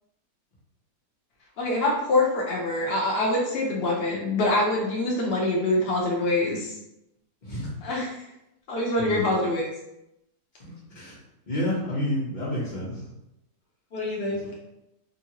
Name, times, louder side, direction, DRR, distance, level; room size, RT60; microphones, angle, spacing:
voice 1, 1.6-6.7 7.8-8.1 8.7-9.6 13.9-14.4, left 2 dB, 85° left, -3 dB, 0.5 m, -25 dB
voice 2, 9.0-9.3 10.6-13.1 14.4-14.5, left 1 dB, 35° left, -5 dB, 0.8 m, -30 dB
3.0 x 2.6 x 2.8 m, 0.88 s
omnidirectional pair, 1.8 m